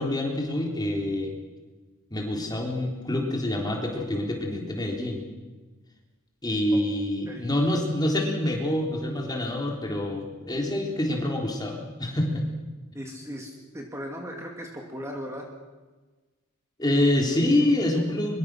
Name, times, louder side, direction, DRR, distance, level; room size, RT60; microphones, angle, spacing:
voice 1, 0.0-1.4 2.1-5.2 6.4-12.4 16.8-18.4, left 1 dB, 20° left, 1 dB, 3.7 m, -26 dB
voice 2, 7.3-7.7 12.9-15.5, equal, 15° right, 1 dB, 2.5 m, -38 dB
24.0 x 23.0 x 6.3 m, 1.3 s
head